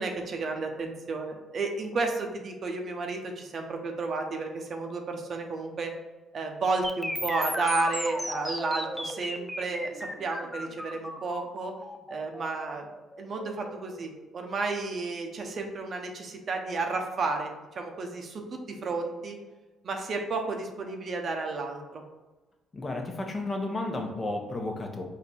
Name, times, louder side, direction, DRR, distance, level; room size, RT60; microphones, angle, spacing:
voice 1, 0.0-5.9 6.3-11.7 12.1-12.9 13.2-19.4 19.8-22.0, right 3 dB, 55° right, 3 dB, 0.8 m, -32 dB
sound 1, 6.8-14.8, equal, 5° left, 0.5 m, -36 dB
voice 2, 22.7-25.0, left 2 dB, 35° left, 2 dB, 1.0 m, -32 dB
4.2 x 2.7 x 4.3 m, 1.2 s
supercardioid pair, 60°, 0 cm